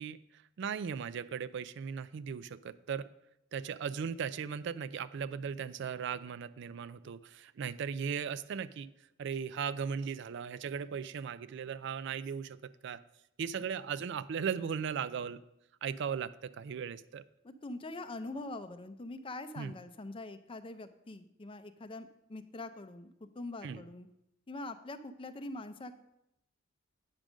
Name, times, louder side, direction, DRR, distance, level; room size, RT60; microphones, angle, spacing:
voice 1, 0.0-3.1 3.5-8.9 9.2-13.0 13.4-15.4 15.8-17.2 19.6-19.7 23.6-23.8, right 7 dB, 60° right, 15 dB, 0.4 m, -37 dB
voice 2, 17.4-24.1 24.5-25.9, left 2 dB, 25° left, 10 dB, 0.5 m, -43 dB
8.9 x 5.2 x 6.2 m, 0.82 s
head